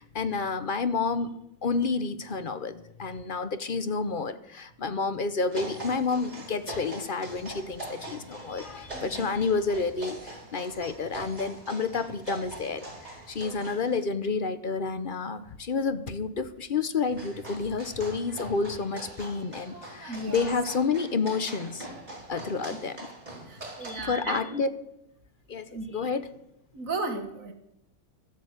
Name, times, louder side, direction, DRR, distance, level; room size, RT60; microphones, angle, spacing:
voice 1, 0.0-21.9 22.3-23.1 23.8-24.7 25.5-26.3, left 4 dB, 45° left, 11 dB, 0.8 m, -30 dB
sound 1, 5.5-14.0 17.0-23.9, right 1 dB, 25° right, 4.3 m, -42 dB
voice 2, 8.7-9.3 20.1-20.5 23.5-24.6 25.7-25.9 26.7-27.5, right 2 dB, 65° right, 6 dB, 2.1 m, -35 dB
13.0 x 8.5 x 8.1 m, 0.81 s
omnidirectional pair, 1.6 m